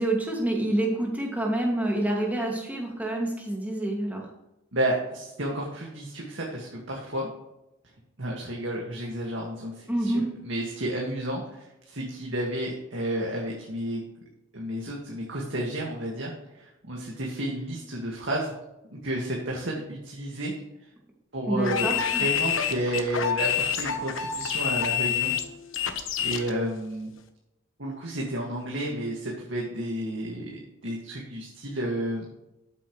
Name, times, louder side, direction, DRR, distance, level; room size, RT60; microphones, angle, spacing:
voice 1, 0.0-4.2 9.9-10.2 21.4-22.2, right 1 dB, 10° right, -1 dB, 2.4 m, -27 dB
voice 2, 4.7-7.3 8.2-14.0 14.5-18.5 18.9-20.5 21.3-25.3 26.2-27.1 27.8-30.4 30.8-32.3, right 1 dB, 60° right, -2 dB, 2.1 m, -31 dB
sound 1, 21.6-26.5, left 8 dB, 70° left, 1.2 m, -27 dB
13.0 x 8.5 x 3.3 m, 0.89 s
head